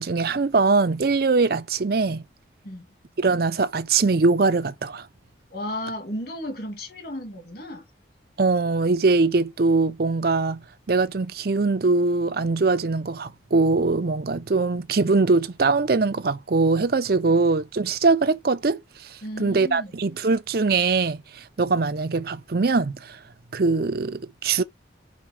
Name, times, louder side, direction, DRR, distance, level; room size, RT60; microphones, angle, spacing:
voice 1, 0.0-2.2 3.2-5.1 8.4-10.6 10.9-23.2 23.5-24.6, right 3 dB, 50° right, 0.5 m, -22 dB
voice 2, 5.5-7.8 17.3-17.4 19.2-19.9, left 1 dB, 55° left, 2.0 m, -34 dB
5.2 x 4.1 x 4.8 m
head